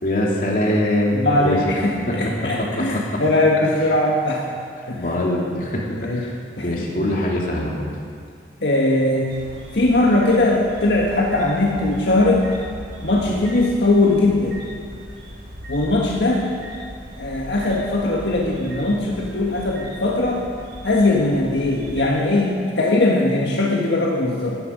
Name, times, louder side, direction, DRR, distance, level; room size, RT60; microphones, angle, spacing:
voice 1, 0.0-1.6 2.1-2.2 2.6-2.7 3.1-3.2 5.0-6.3 6.6-7.8 13.2-13.4, left 1 dB, 50° left, -2 dB, 2.8 m, -23 dB
voice 2, 1.1-4.4 4.9-5.0 6.0-6.2 6.6-6.7 8.6-9.3 9.7-12.5 13.0-14.5 15.7-16.5 17.2-20.5 20.8-24.6, left 2 dB, 75° left, -2 dB, 1.7 m, -20 dB
sound 1, 9.3-22.0, equal, 60° right, 4.8 m, -38 dB
17.5 x 14.0 x 5.2 m, 2.2 s
head